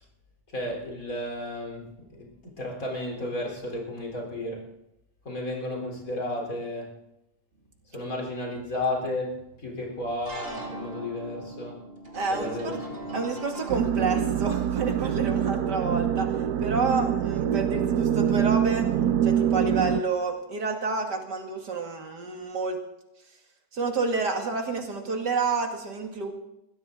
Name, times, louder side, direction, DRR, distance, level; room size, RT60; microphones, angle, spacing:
voice 1, 0.5-4.7 5.3-6.9 7.9-11.8 12.3-13.3, left 1 dB, 55° left, 1 dB, 4.2 m, -33 dB
sound 1, 7.7-7.8 10.3-13.8, right 1 dB, 35° right, 2.6 m, -38 dB
voice 2, 12.1-12.8 13.1-18.9 19.2-22.8 23.7-26.3, right 4 dB, 90° right, 3 dB, 3.0 m, -29 dB
sound 2, 13.7-20.0, right 9 dB, 70° right, 1.3 m, -25 dB
21.5 x 15.0 x 3.8 m, 0.87 s
omnidirectional pair, 1.8 m